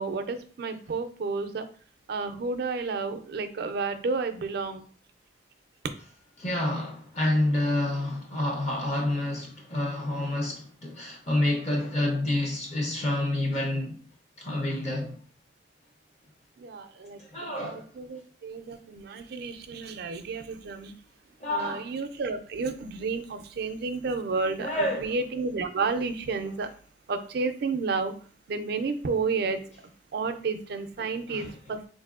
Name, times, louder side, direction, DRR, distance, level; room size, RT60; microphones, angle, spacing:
voice 1, 0.0-1.7 2.1-4.9 16.6-17.2 17.6-20.9 21.5-24.7 25.0-26.7 27.1-28.1 28.5-29.6 30.1-31.9, right 4 dB, 60° right, 0.4 m, -31 dB
voice 2, 6.4-14.0 14.4-15.2 17.2-17.9 21.4-21.9 24.6-25.2 26.4-26.5 31.0-31.6, left 1 dB, 40° left, 0.7 m, -28 dB
3.9 x 2.6 x 2.4 m
head